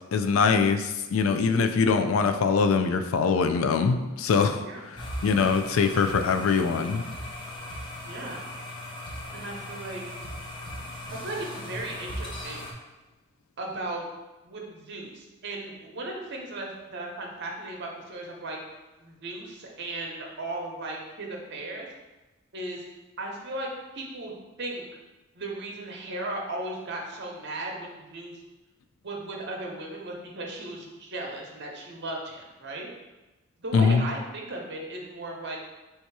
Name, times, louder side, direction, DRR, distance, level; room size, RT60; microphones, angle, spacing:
voice 1, 0.1-7.1 33.7-34.0, left 5 dB, 80° left, 7 dB, 0.4 m, -23 dB
sound 1, 5.0-12.7, left 1 dB, 25° left, 0.6 m, -38 dB
voice 2, 8.0-8.4 9.3-10.0 11.1-12.7 13.6-14.1 14.4-18.6 19.0-21.9 22.5-22.8 23.2-24.3 24.6-24.8 25.3-28.4 29.0-32.9 33.6-35.6, right 2 dB, 55° right, 0 dB, 0.8 m, -36 dB
3.5 x 2.8 x 4.6 m, 1.1 s
head